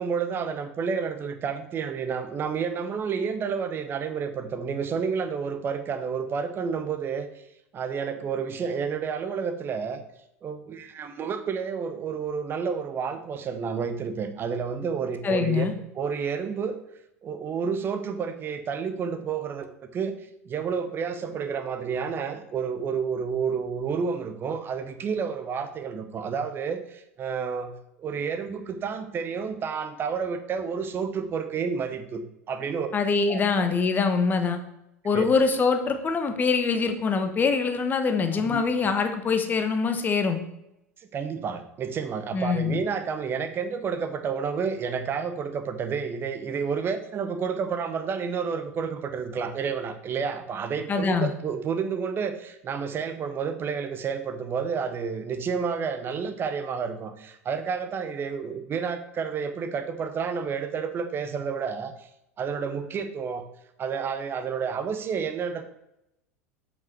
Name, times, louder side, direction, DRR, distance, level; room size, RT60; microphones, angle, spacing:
voice 1, 0.0-7.3 7.7-10.0 10.4-15.7 15.9-16.8 17.2-20.1 20.5-27.7 28.0-32.9 33.3-33.7 35.1-35.2 38.3-38.9 41.0-62.1 62.4-63.5 63.8-65.6, right 6 dB, 25° right, 9 dB, 0.9 m, -30 dB
voice 2, 15.2-15.7 32.9-34.6 35.0-40.4 42.3-42.8 50.9-51.3, left 5 dB, 20° left, 7 dB, 1.1 m, -24 dB
7.4 x 5.5 x 4.4 m, 0.83 s
figure-of-eight pair, 80°, 8 cm